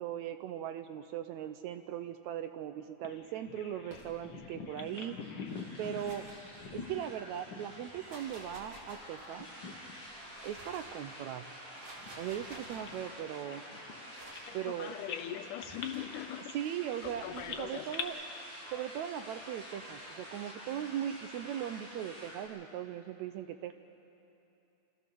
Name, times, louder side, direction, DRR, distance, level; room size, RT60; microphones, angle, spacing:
voice 1, 0.0-5.2 5.8-6.3 6.7-9.5 10.4-11.6 12.2-13.6 14.5-14.9 16.5-18.2 18.7-23.7, right 10 dB, 75° right, 9 dB, 1.8 m, -39 dB
Bird vocalization bird call bird song, 3.0-9.0 9.3-10.2 10.5-10.7 11.3-14.7 15.1-18.0, left 6 dB, 65° left, 1.1 m, -46 dB
sound 1, 3.8-4.5 5.6-7.1 7.8-9.4 10.1-11.0 11.6-13.0 14.1-14.6 15.6-16.0 17.0-17.6, right 2 dB, 50° right, 3.8 m, -53 dB
sound 2, 4.8-22.5, equal, 15° right, 5.8 m, -49 dB
voice 2, 14.5-16.6 17.0-17.9, left 11 dB, 85° left, 10 dB, 2.2 m, -41 dB
27.5 x 15.5 x 6.9 m, 2.9 s
omnidirectional pair, 3.7 m